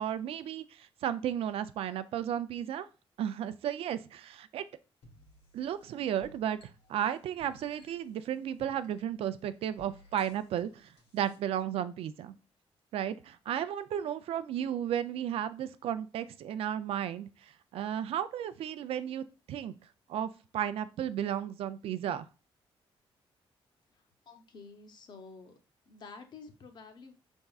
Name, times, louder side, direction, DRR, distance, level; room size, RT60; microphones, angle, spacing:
voice 1, 0.0-2.9 3.2-4.6 5.5-6.6 6.9-12.3 12.9-19.8 20.1-22.3, right 10 dB, 75° right, 13 dB, 0.4 m, -34 dB
sound 1, 5.0-11.4, equal, 75° left, 1.4 m, -60 dB
voice 2, 23.9-25.5 25.9-27.1, left 4 dB, 45° left, 6 dB, 0.8 m, -50 dB
5.3 x 3.5 x 2.3 m, 0.33 s
cardioid pair, 145°, 10 cm